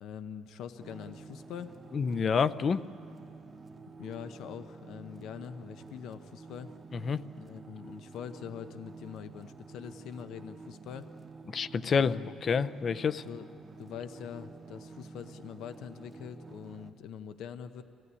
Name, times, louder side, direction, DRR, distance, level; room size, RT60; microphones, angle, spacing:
voice 1, 0.0-1.8 4.0-6.7 7.3-11.1 11.9-12.3 13.2-13.5 13.8-17.8, left 8 dB, 75° left, 10 dB, 0.8 m, -43 dB
sound 1, 0.8-16.9, right 4 dB, 25° right, 1.0 m, -49 dB
voice 2, 1.9-2.9 7.0-7.2 11.5-12.2 12.4-13.2, left 6 dB, 40° left, 15 dB, 0.6 m, -28 dB
25.0 x 17.0 x 9.7 m, 2.6 s
cardioid pair, 125°, 0 cm